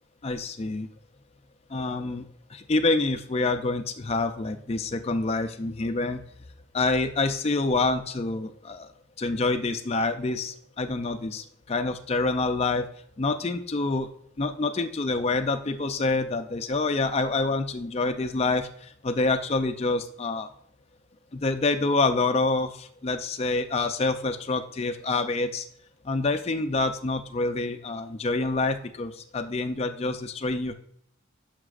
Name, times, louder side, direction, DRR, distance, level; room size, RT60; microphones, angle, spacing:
voice 1, 0.2-0.9 1.7-2.2 2.5-6.2 6.7-8.9 9.2-12.9 13.2-14.1 14.4-20.5 21.3-25.7 26.0-30.7, left 3 dB, 30° left, 8 dB, 0.4 m, -27 dB
11.0 x 6.0 x 2.5 m, 0.68 s
head